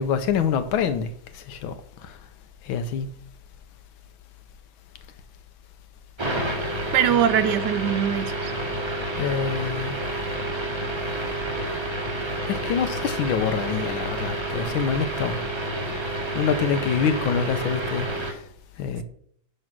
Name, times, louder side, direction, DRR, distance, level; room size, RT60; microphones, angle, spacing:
voice 1, 0.0-1.7 2.0-2.1 2.6-3.1 9.2-10.0 12.5-15.4 16.3-18.4 18.8-19.0, left 7 dB, 90° left, 1.6 m, -26 dB
sound 1, 6.2-18.3, right 1 dB, 15° right, 1.2 m, -29 dB
voice 2, 6.9-8.5, right 9 dB, 70° right, 1.1 m, -22 dB
9.8 x 3.9 x 6.0 m
omnidirectional pair, 2.2 m